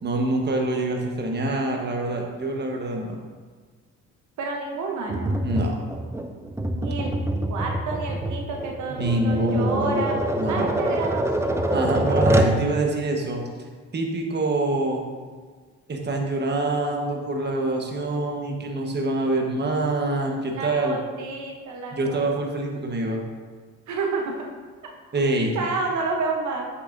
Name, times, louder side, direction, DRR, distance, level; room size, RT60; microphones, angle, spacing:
voice 1, 0.0-3.2 5.4-5.8 8.9-10.0 10.3-10.8 11.7-13.4 13.9-15.0 15.9-21.0 21.9-23.2 25.1-25.5, right 2 dB, 35° right, 1 dB, 1.2 m, -25 dB
voice 2, 4.4-5.4 6.7-7.2 7.5-10.2 10.5-12.1 20.5-22.3 23.9-24.5 25.5-26.7, right 3 dB, 70° right, 1 dB, 0.9 m, -30 dB
Tap, 5.1-12.6, right 1 dB, 10° right, 0.5 m, -25 dB
7.8 x 6.9 x 2.6 m, 1.5 s
cardioid pair, 90°, 30 cm